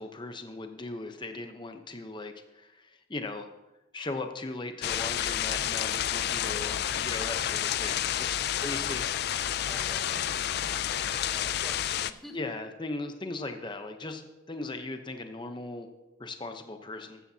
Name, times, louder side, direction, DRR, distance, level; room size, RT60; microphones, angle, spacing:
voice 1, 0.0-3.5 3.9-9.3 12.3-14.2 14.5-15.9 16.2-17.2, left 2 dB, 25° left, 7 dB, 0.8 m, -38 dB
sound 1, 4.8-12.1, left 10 dB, 50° left, 0.3 m, -30 dB
voice 2, 9.6-12.4, equal, ahead, 2 dB, 1.1 m, -48 dB
14.0 x 13.0 x 2.8 m, 1.0 s
head